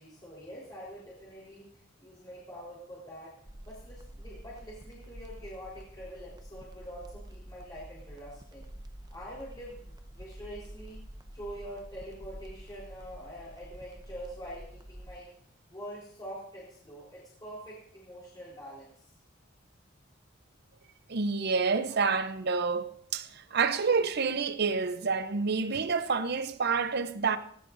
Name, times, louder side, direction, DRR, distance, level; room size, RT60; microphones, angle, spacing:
voice 1, 0.0-3.3 3.6-8.7 9.1-11.0 11.3-15.3 15.7-19.1, equal, 20° left, 4.1 m, -45 dB
sound 1, 3.5-15.2, right 1 dB, 20° right, 0.9 m, -48 dB
voice 2, 21.1-27.4, right 5 dB, 55° right, 0.7 m, -28 dB
18.0 x 17.0 x 2.6 m
head